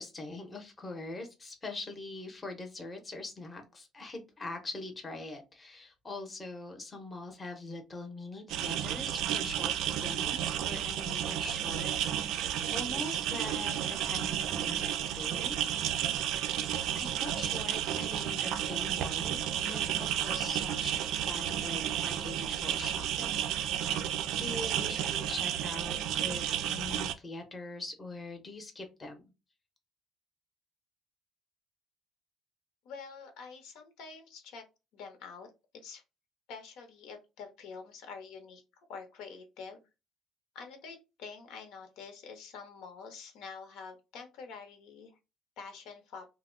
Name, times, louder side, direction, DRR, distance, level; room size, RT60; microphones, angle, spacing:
voice 1, 0.0-15.7 16.9-24.1 24.3-29.3, left 2 dB, 20° left, 4 dB, 0.7 m, -43 dB
sound 1, 8.5-27.1, right 10 dB, 75° right, 0.3 m, -32 dB
voice 2, 32.8-34.6 34.9-36.0 36.5-38.6 38.9-39.8 40.5-45.1 45.6-46.3, left 5 dB, 80° left, 6 dB, 0.8 m, -47 dB
2.9 x 2.1 x 3.7 m, 0.27 s
cardioid pair, 150°, 0 cm